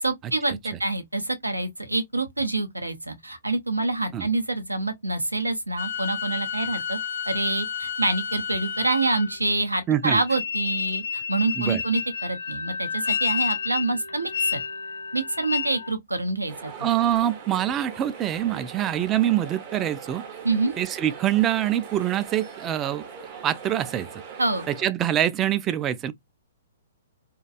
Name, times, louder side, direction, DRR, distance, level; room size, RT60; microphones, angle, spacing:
voice 1, 0.0-7.0 7.3-14.6 15.1-16.9 20.4-20.7 24.4-24.7, right 2 dB, 90° right, 0.6 m, -26 dB
sound 1, 5.8-9.5 10.2-15.9, left 7 dB, 65° left, 0.5 m, -30 dB
voice 2, 9.9-10.2 11.5-11.8 16.8-20.2 20.8-23.0 23.4-24.1 24.7-26.1, right 11 dB, 25° right, 0.3 m, -24 dB
sound 2, 16.5-24.9, right 6 dB, 40° right, 0.7 m, -41 dB
2.5 x 2.2 x 2.5 m
figure-of-eight pair, 115°, 0 cm